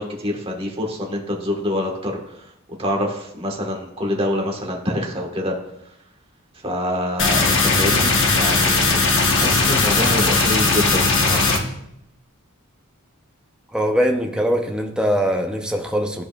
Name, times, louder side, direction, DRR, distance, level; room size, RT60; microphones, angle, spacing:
voice 1, 0.0-2.4 2.8-5.5 6.6-9.1 9.4-11.7, left 1 dB, 25° right, 0 dB, 1.4 m, -26 dB
sound 1, 7.2-11.6, left 3 dB, 60° left, 1.1 m, -18 dB
voice 2, 13.7-16.2, equal, 5° right, 2 dB, 0.7 m, -21 dB
14.0 x 4.8 x 2.4 m, 0.77 s
head